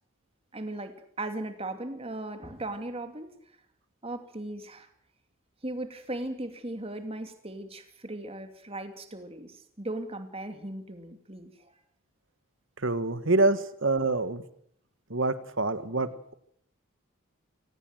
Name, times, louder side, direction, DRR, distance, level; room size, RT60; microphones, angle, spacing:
voice 1, 0.5-3.3 4.0-4.9 5.6-11.7 15.9-16.0, right 1 dB, 25° right, 7 dB, 2.6 m, -38 dB
voice 2, 12.8-14.4 15.1-16.3, right 2 dB, 60° right, 12 dB, 1.6 m, -26 dB
24.5 x 19.5 x 7.9 m, 0.69 s
head